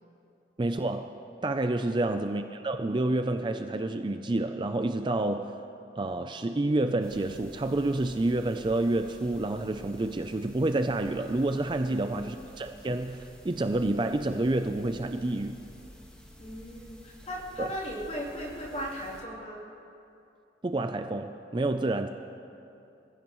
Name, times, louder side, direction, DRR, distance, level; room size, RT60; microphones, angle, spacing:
voice 1, 0.6-1.2 1.4-5.6 6.0-15.6 17.6-17.7 20.6-22.1, right 2 dB, 25° right, 8 dB, 0.4 m, -29 dB
sound 1, 7.0-19.2, equal, 5° left, 1.4 m, -51 dB
voice 2, 11.8-12.3 16.4-19.6, equal, 35° left, -4 dB, 3.0 m, -38 dB
25.0 x 15.5 x 3.1 m, 2.7 s
head